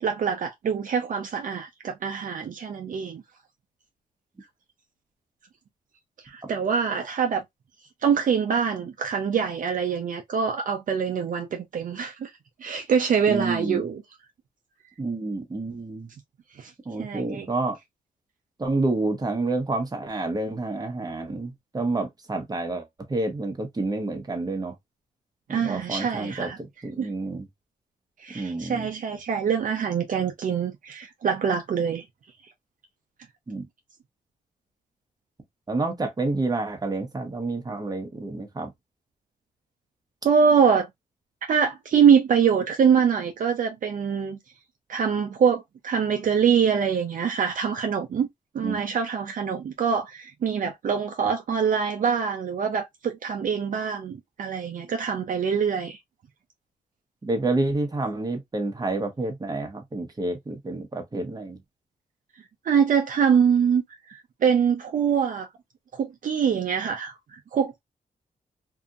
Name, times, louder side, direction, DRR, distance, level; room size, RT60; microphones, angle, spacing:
voice 1, 0.0-3.2 6.3-7.4 8.0-12.3 12.6-14.0 16.6-16.7 17.0-17.5 25.5-26.6 27.0-27.1 28.2-32.0 40.2-40.9 41.5-44.4 44.9-48.3 48.5-56.0 62.6-63.8 64.1-65.5 65.9-67.8, right 7 dB, 65° right, 0.6 m, -24 dB
voice 2, 13.3-13.9 15.0-16.1 16.8-17.8 18.6-24.7 25.5-26.5 26.8-27.5 28.3-28.9 33.5-33.6 35.7-38.7 48.6-48.8 57.2-61.6, right 2 dB, 25° right, 1.0 m, -29 dB
2.8 x 2.5 x 2.4 m
cardioid pair, 80°, 15 cm